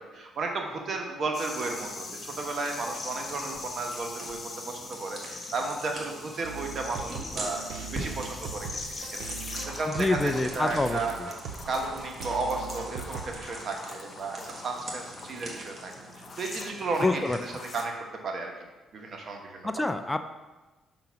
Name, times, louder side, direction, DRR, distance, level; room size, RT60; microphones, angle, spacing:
voice 1, 0.0-8.7 9.4-11.2 11.7-18.5 18.9-19.8, right 3 dB, 50° right, 2 dB, 1.1 m, -34 dB
sound 1, 1.3-17.9, left 3 dB, 40° left, 0.7 m, -42 dB
sound 2, 1.5-17.8, right 1 dB, 30° right, 1.6 m, -44 dB
sound 3, 6.4-13.4, right 6 dB, 85° right, 0.6 m, -41 dB
voice 2, 10.0-11.0 17.0-17.4 19.6-20.2, left 2 dB, 15° left, 8 dB, 0.4 m, -26 dB
5.8 x 3.9 x 5.7 m, 1.1 s
cardioid pair, 90°, 0 cm